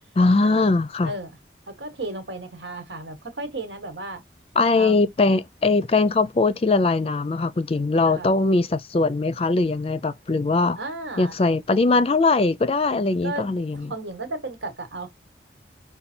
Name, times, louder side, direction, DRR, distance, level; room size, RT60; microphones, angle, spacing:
voice 1, 0.2-1.1 4.6-10.8 11.2-13.9, left 3 dB, 35° left, 0.4 m, -21 dB
voice 2, 1.7-4.2 4.7-5.0 8.0-8.3 10.8-11.3 13.2-15.1, right 2 dB, 90° right, 1.4 m, -34 dB
5.3 x 2.3 x 4.3 m
head